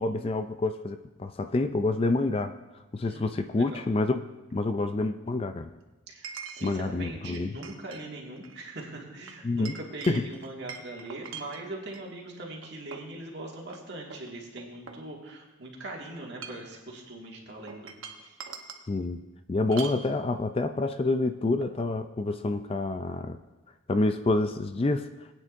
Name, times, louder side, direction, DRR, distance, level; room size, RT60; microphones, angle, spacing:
voice 1, 0.0-2.5 2.9-4.2 4.5-5.7 6.6-7.5 9.4-9.8 10.1-10.3 18.9-19.2 19.5-23.4 23.9-25.1, left 2 dB, 30° left, 9 dB, 0.3 m, -27 dB
Chink clink, 2.8-2.9 6.2-6.8 7.2-8.0 8.4-8.6 9.3-12.1 12.6-13.2 13.7-13.8 14.1-15.5 16.2-16.8 17.7-18.9 19.7-20.0, right 6 dB, 80° right, 1.0 m, -43 dB
voice 2, 3.5-3.9 6.1-17.9 18.2-18.4, right 2 dB, 55° right, -2 dB, 2.0 m, -41 dB
20.0 x 9.0 x 2.6 m, 1.1 s
head